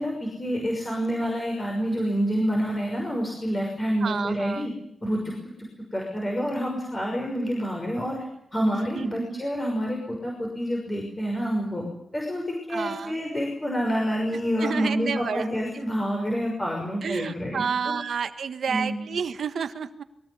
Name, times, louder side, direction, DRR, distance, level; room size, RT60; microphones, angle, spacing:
voice 1, 0.0-4.7 5.0-5.3 5.9-8.2 8.5-11.9 12.1-17.6 18.7-19.0, equal, 20° left, 0 dB, 6.0 m, -28 dB
voice 2, 4.0-4.6 8.9-9.4 12.7-13.1 14.6-15.4 17.0-20.0, right 6 dB, 65° right, 10 dB, 1.4 m, -30 dB
22.5 x 18.5 x 9.8 m, 0.80 s
wide cardioid pair, 155°, 0 cm